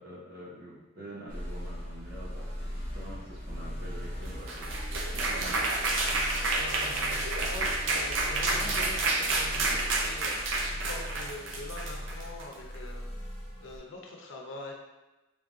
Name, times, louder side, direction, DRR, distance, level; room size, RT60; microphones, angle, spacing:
voice 1, 0.0-5.7, right 1 dB, 55° right, -6 dB, 1.0 m, -46 dB
sound 1, 1.3-13.8, equal, 30° left, 1.1 m, -38 dB
sound 2, 4.3-12.5, right 2 dB, 80° right, 0.5 m, -30 dB
voice 2, 6.5-13.0 13.6-14.7, left 2 dB, 85° left, 0 dB, 0.7 m, -44 dB
3.6 x 3.4 x 2.6 m, 1.1 s
head